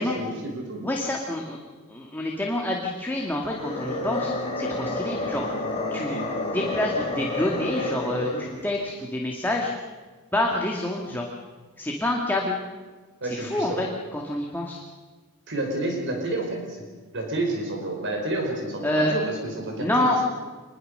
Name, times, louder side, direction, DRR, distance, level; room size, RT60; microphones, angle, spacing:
voice 1, 0.0-0.8 13.2-13.8 15.5-16.8 17.1-19.9, right 2 dB, 55° right, 2 dB, 5.0 m, -29 dB
voice 2, 0.8-1.6 1.9-5.5 5.9-6.2 6.5-9.7 10.3-11.3 11.8-12.6 13.2-13.9 14.1-14.8 18.8-19.1 19.8-20.2, left 1 dB, 10° left, -1 dB, 2.0 m, -27 dB
sound 1, 3.3-8.7, left 2 dB, 25° left, 5.7 m, -30 dB
26.0 x 21.0 x 6.7 m, 1.4 s
head